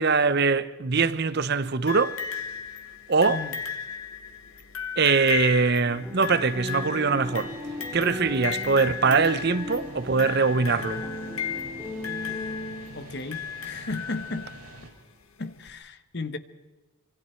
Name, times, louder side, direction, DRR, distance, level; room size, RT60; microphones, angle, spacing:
voice 1, 0.0-2.2 3.1-3.4 5.0-7.5 7.9-11.0, right 4 dB, 50° right, 0.8 m, -23 dB
sound 1, 1.9-14.7 15.7-15.8, left 8 dB, 85° left, 1.7 m, -35 dB
sound 2, 5.8-13.1, left 1 dB, 5° right, 3.7 m, -37 dB
sound 3, 7.4-14.9, right 2 dB, 90° right, 6.4 m, -46 dB
voice 2, 12.9-14.5 15.4-16.4, left 3 dB, 55° left, 1.1 m, -34 dB
25.5 x 25.0 x 4.5 m
head